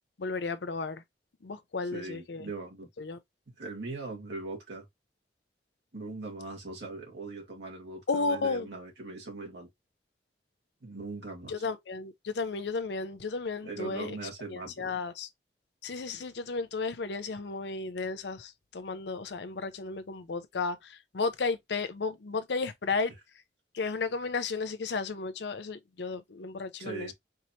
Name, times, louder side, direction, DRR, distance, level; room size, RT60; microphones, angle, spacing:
voice 1, 0.2-1.0 1.4-2.5 3.0-3.2 8.1-8.7 11.5-14.2 14.5-15.3 15.8-23.1 23.7-27.1, left 4 dB, 75° left, 0.6 m, -33 dB
voice 2, 1.9-2.9 3.6-4.9 5.9-9.7 10.8-11.7 13.6-14.9 26.8-27.1, right 3 dB, 85° right, 2.2 m, -40 dB
4.7 x 2.9 x 2.7 m
head